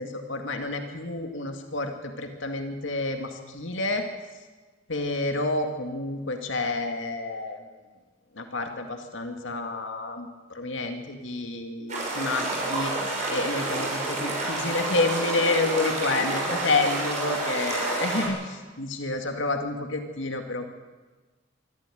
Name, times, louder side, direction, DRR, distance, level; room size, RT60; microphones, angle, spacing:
voice 1, 0.0-4.0 4.9-7.6 8.4-12.9 13.3-20.6, left 3 dB, 80° left, 5 dB, 2.1 m, -29 dB
sound 1, 11.9-18.3, right 2 dB, 40° right, 6.8 m, -29 dB
23.5 x 13.5 x 9.2 m, 1.3 s
head